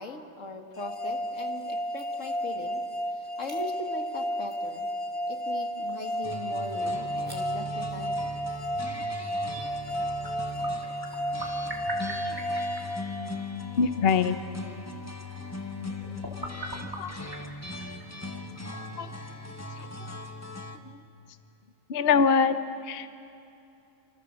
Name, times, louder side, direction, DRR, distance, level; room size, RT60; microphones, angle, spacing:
voice 1, 0.0-2.8 3.4-4.9 5.3-8.4, left 2 dB, 90° left, 4 dB, 2.4 m, -39 dB
sound 1, 0.8-13.7, equal, 30° left, 2.0 m, -32 dB
sound 2, 1.1-20.7, right 1 dB, 15° right, 3.6 m, -47 dB
sound 3, 6.2-20.8, left 2 dB, 15° left, 1.3 m, -39 dB
voice 2, 13.8-14.4 17.0-17.1 19.0-19.1 19.8-19.9 21.9-22.6 22.8-23.1, left 6 dB, 55° left, 10 dB, 1.0 m, -23 dB
29.5 x 26.5 x 7.5 m, 2.7 s
omnidirectional pair, 1.3 m